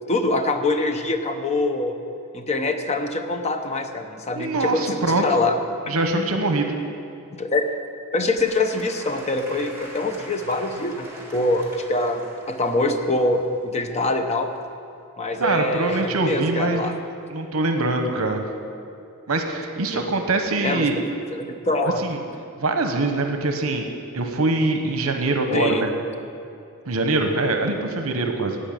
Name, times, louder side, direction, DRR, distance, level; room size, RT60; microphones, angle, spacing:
voice 1, 0.1-2.0 2.3-5.6 5.9-6.3 7.3-7.7 8.1-12.2 12.5-14.5 15.2-16.9 19.9-20.0 20.6-20.9 21.3-22.0 25.5-25.8, left 2 dB, 30° left, 6 dB, 0.8 m, -24 dB
voice 2, 4.3-5.3 5.9-6.7 15.4-16.9 17.3-18.4 19.3-21.1 22.0-22.2 22.6-23.9 24.1-25.9 26.9-28.6, right 2 dB, 70° right, 4 dB, 1.0 m, -23 dB
Applause / Crowd, 8.4-14.7, right 1 dB, 10° right, 2.0 m, -43 dB
16.0 x 5.5 x 8.9 m, 2.6 s
head